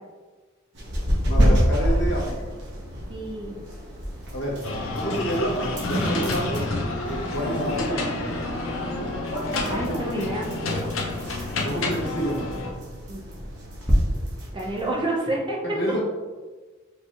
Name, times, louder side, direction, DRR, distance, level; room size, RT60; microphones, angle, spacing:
sound 1, 0.7-14.9, equal, 60° right, 1.1 m, -30 dB
voice 1, 1.3-2.5 4.3-4.6 4.9-6.7 7.1-8.4 11.4-12.5 15.6-16.0, right 1 dB, 60° left, -5 dB, 1.5 m, -29 dB
sound 2, 1.3-13.9, equal, 5° left, 1.0 m, -34 dB
voice 2, 3.1-3.5 9.7-10.5 13.1-13.2 14.5-15.6, right 1 dB, 25° right, -2 dB, 0.6 m, -28 dB
sound 3, 4.6-12.7, left 2 dB, 75° left, 0.8 m, -29 dB
4.4 x 3.2 x 2.9 m, 1.3 s
head